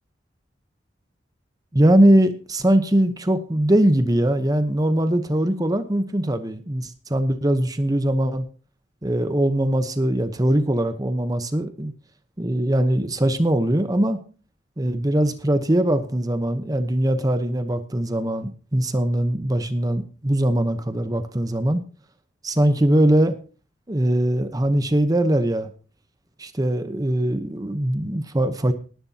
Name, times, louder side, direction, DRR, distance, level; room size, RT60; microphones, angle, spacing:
voice 1, 1.7-8.5 9.0-11.9 12.4-14.2 14.8-21.8 22.4-23.3 23.9-25.7 26.4-28.7, right 1 dB, 20° right, 9 dB, 0.9 m, -21 dB
19.0 x 11.0 x 2.9 m, 0.37 s
head